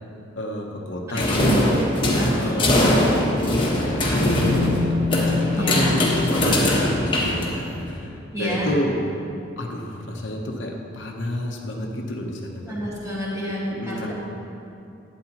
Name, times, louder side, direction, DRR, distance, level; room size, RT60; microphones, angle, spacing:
voice 1, 0.4-1.8 2.4-5.0 5.5-9.0 9.6-12.7 13.7-14.1, left 1 dB, 70° left, 0 dB, 1.0 m, -29 dB
sound 1, 1.2-7.9, left 1 dB, 25° left, 1.3 m, -21 dB
voice 2, 2.2-2.8 5.5-5.9 8.3-8.7 12.7-14.1, equal, 15° right, -7 dB, 1.9 m, -29 dB
Bass guitar, 4.2-8.1 9.3-9.4, left 5 dB, 90° right, 2.3 m, -28 dB
11.5 x 9.3 x 3.0 m, 2.7 s
head